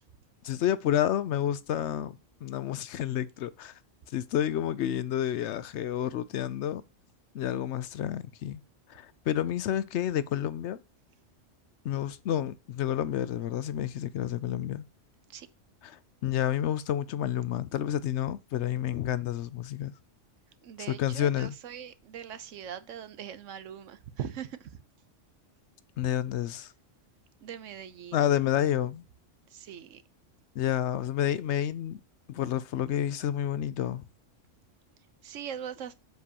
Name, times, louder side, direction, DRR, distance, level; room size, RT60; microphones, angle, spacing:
voice 1, 0.4-3.8 4.1-6.8 7.3-8.6 8.9-10.8 11.8-14.9 15.8-19.9 20.9-21.5 26.0-26.7 28.1-29.0 30.5-32.0 32.3-34.0, left 11 dB, 70° left, 0.8 m, -30 dB
voice 2, 20.6-24.7 27.4-28.3 29.5-30.0 35.2-35.9, right 9 dB, 85° right, 1.1 m, -41 dB
7.7 x 7.5 x 2.9 m
omnidirectional pair, 1.3 m